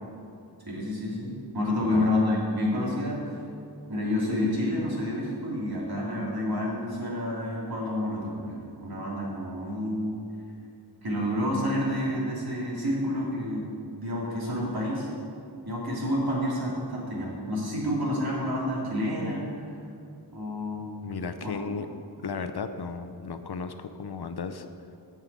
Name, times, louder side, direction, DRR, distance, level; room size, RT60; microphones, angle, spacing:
voice 1, 0.6-3.2 3.9-10.2 11.0-13.7 14.0-15.1 15.7-19.5 20.3-20.9 21.4-21.5, left 1 dB, 60° right, -5 dB, 2.9 m, -29 dB
voice 2, 21.0-21.9 22.2-24.7, left 5 dB, 65° left, 9 dB, 0.7 m, -35 dB
9.5 x 5.7 x 8.3 m, 2.5 s
wide cardioid pair, 70°, 42 cm